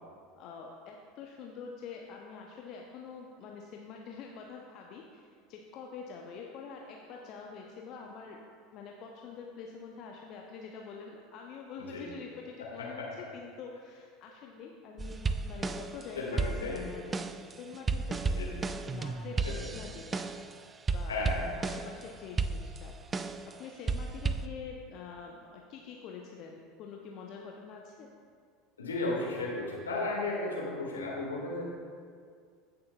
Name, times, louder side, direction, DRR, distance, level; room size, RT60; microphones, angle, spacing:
voice 1, 0.4-8.4 8.7-13.0 13.3-18.4 18.7-20.5 20.9-21.3 21.6-23.0 23.4-28.1 30.6-30.8, left 5 dB, 45° left, 0 dB, 0.7 m, -46 dB
voice 2, 12.8-13.1 16.2-16.9 18.4-18.7 19.4-19.7 21.1-21.9 28.8-31.6, left 2 dB, 75° left, -3 dB, 1.9 m, -35 dB
sound 1, 15.0-16.0 16.4-20.5 20.9-22.0 22.4-23.5 23.9-24.5, right 4 dB, 20° right, 0.3 m, -33 dB
16.0 x 6.7 x 2.3 m, 2.1 s
figure-of-eight pair, 75°, 0 cm